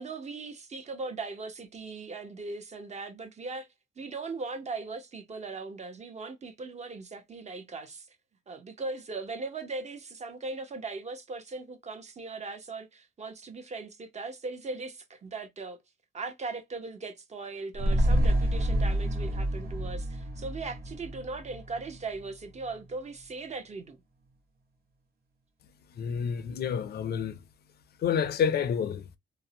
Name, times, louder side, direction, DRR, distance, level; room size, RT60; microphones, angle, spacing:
voice 1, 0.0-3.7 4.0-8.1 8.5-15.8 16.1-24.0, right 3 dB, 35° right, 0.7 m, -39 dB
sound 1, 17.7-22.3 22.6-22.7, right 1 dB, 50° right, 1.1 m, -28 dB
voice 2, 26.0-27.4 28.0-29.1, left 7 dB, 55° left, 0.5 m, -29 dB
2.6 x 2.0 x 2.6 m
cardioid pair, 90°, 20 cm